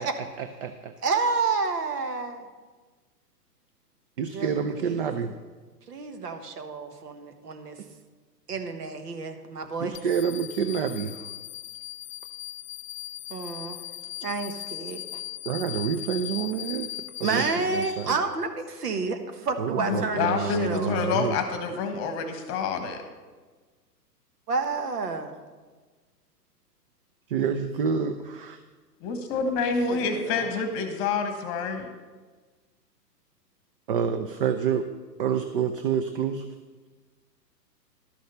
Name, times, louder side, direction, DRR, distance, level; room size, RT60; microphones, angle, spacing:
voice 1, 0.0-0.9 4.2-5.3 9.8-11.3 15.5-16.9 17.2-18.2 19.6-21.4 27.3-28.6 33.9-34.9 35.2-36.5, right 7 dB, 35° right, 8 dB, 0.5 m, -28 dB
voice 2, 1.0-2.5 4.3-5.0 5.9-7.8 8.5-9.9 13.3-13.8 14.2-15.2 17.2-20.9 24.5-25.3 29.9-30.5, right 4 dB, 65° right, 6 dB, 1.5 m, -30 dB
sound 1, 9.9-18.4, left 14 dB, 50° left, 0.6 m, -39 dB
voice 3, 19.8-23.0 29.0-31.9, left 5 dB, 25° left, 7 dB, 1.2 m, -28 dB
12.0 x 6.3 x 6.8 m, 1.4 s
figure-of-eight pair, 120°, 50 cm